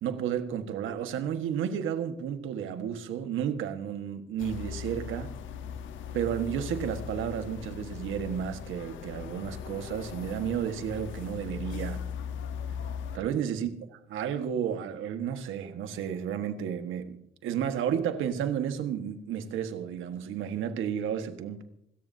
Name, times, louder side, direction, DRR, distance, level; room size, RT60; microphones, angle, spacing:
voice 1, 0.0-5.4 6.1-12.0 13.1-17.2 17.4-21.6, right 8 dB, 85° right, 1.6 m, -32 dB
sound 1, 4.4-13.2, left 8 dB, 80° left, 1.1 m, -39 dB
26.0 x 14.0 x 2.8 m
cardioid pair, 90°, 20 cm